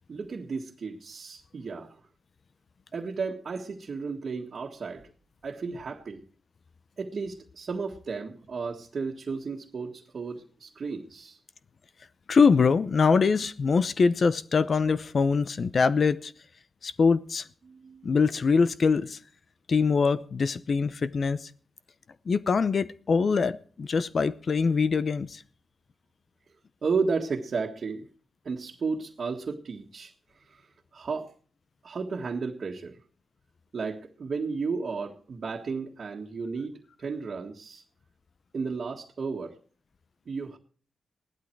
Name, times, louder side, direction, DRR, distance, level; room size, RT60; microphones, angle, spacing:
voice 1, 0.1-2.0 2.9-5.1 5.4-6.2 7.0-11.4 17.6-18.1 26.8-28.1 28.5-30.1 30.5-30.7 30.9-31.3 31.8-33.0 33.7-37.8 38.5-39.6 40.3-40.6, right 4 dB, 55° right, 1.7 m, -33 dB
voice 2, 12.3-16.3 16.8-17.5 18.0-19.2 19.7-21.5 22.3-25.4, left 5 dB, 55° left, 0.7 m, -23 dB
17.5 x 12.0 x 4.6 m
wide cardioid pair, 100°, 0 cm